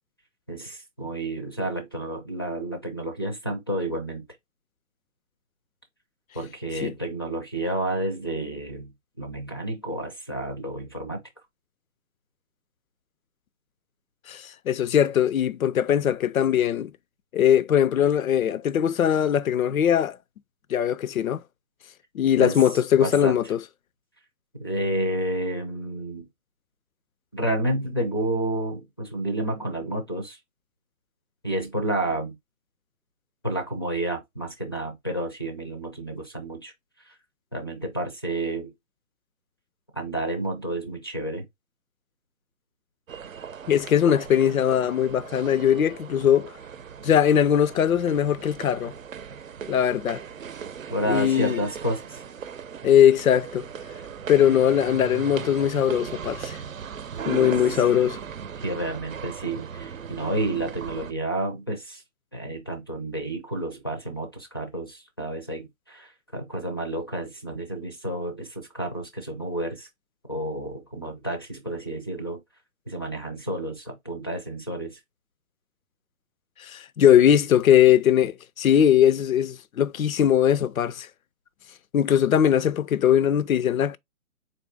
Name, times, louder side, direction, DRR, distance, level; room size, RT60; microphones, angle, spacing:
voice 1, 0.5-4.2 6.3-8.9 9.2-11.2 22.4-22.6 23.0-23.4 24.6-26.3 27.3-30.4 31.4-32.4 33.4-36.7 37.1-37.2 37.5-38.7 39.9-41.5 50.9-52.2 57.7-57.8 58.6-62.0 62.3-69.9 70.3-72.4 72.9-75.0, right 1 dB, 20° left, 0.4 m, -30 dB
voice 2, 14.3-16.9 17.3-20.2 20.7-21.4 22.1-23.6 43.7-46.5 47.0-48.9 49.7-50.2 51.1-51.6 52.8-53.7 54.3-56.6 57.3-58.2 76.6-81.1 81.9-84.0, left 9 dB, 80° left, 0.5 m, -20 dB
sound 1, 43.1-61.1, right 7 dB, 75° right, 0.7 m, -38 dB
4.1 x 2.6 x 3.3 m
figure-of-eight pair, 145°, 41 cm